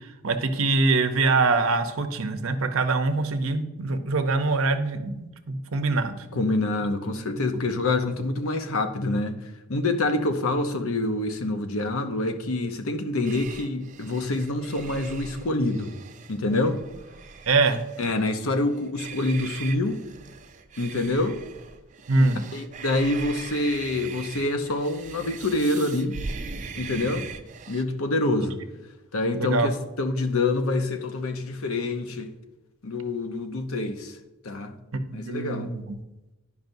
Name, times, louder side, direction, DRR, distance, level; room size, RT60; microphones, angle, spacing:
voice 1, 0.2-6.3 17.5-17.8 22.1-22.4 28.5-28.6 29.3-29.7 34.9-36.0, right 3 dB, 70° right, 0.7 m, -24 dB
voice 2, 6.3-15.9 16.3-16.8 18.0-20.0 20.8-21.4 22.2-26.2 26.8-27.2 27.7-28.6 29.1-32.3 32.8-34.2 34.4-34.7 35.1-35.7, left 2 dB, 70° left, 0.7 m, -26 dB
sound 1, 13.2-27.8, right 5 dB, 35° right, 0.4 m, -40 dB
10.5 x 5.4 x 2.7 m
head